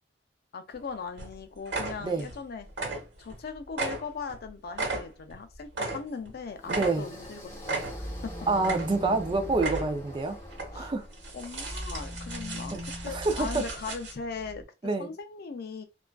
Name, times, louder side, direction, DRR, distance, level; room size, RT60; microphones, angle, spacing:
voice 1, 0.5-2.7 3.2-8.3 10.7-10.9 11.3-14.6 15.0-15.8, left 5 dB, 55° left, 0.4 m, -39 dB
sound 1, 0.7-0.9 1.2-1.3 1.6-2.4 2.7-3.4 3.7-6.3 6.6-7.3 7.6-8.2 8.6-9.2 9.5-10.1 10.5-10.7 11.1-14.1, right 3 dB, 75° right, 1.2 m, -35 dB
sound 2, 6.4-11.6, equal, 15° left, 0.9 m, -46 dB
voice 2, 6.7-7.0 8.5-10.4 10.8-11.0 12.7-13.6 14.8-15.1, right 3 dB, 25° right, 0.4 m, -27 dB
sound 3, 7.0-10.9 11.3-14.6, equal, 10° right, 1.1 m, -41 dB
2.3 x 2.3 x 2.2 m
head